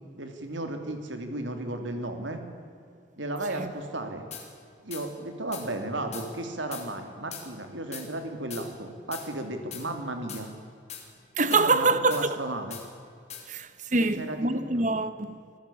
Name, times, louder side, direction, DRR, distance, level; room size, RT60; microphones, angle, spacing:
voice 1, 0.2-2.4 3.2-4.3 4.8-10.5 11.5-12.8 14.0-14.9, right 2 dB, 75° right, 3.0 m, -34 dB
sound 1, 4.3-4.5 4.9-5.0 5.5-5.7 6.1-6.3 6.7-6.9 7.3-7.4 7.9-8.1 8.5-8.6 9.1-9.3 9.7-9.8 10.3-10.4 10.9-11.0 11.5-11.6 12.1-12.2 12.7-12.8 13.3-13.4, left 8 dB, 35° left, 3.4 m, -40 dB
voice 2, 11.4-12.3 13.5-15.4, right 3 dB, 40° right, 1.1 m, -25 dB
25.0 x 15.0 x 8.7 m
head